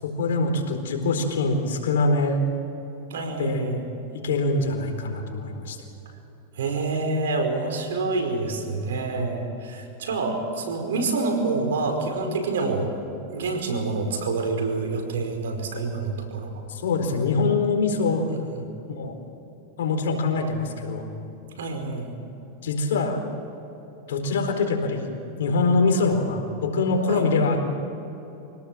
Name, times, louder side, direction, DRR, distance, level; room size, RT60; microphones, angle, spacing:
voice 1, 0.0-2.4 3.4-3.6 4.2-5.8 16.7-18.3 19.0-19.1 19.8-21.0 22.6-23.4 24.1-25.1 25.4-27.7, left 3 dB, 85° left, 4 dB, 4.3 m, -24 dB
voice 2, 3.1-3.8 6.6-12.9 13.3-16.6 18.3-18.6 21.6-22.1 27.1-27.2, right 3 dB, 85° right, 4 dB, 4.9 m, -27 dB
26.0 x 18.0 x 7.6 m, 3.0 s
hypercardioid pair, 125°, 0 cm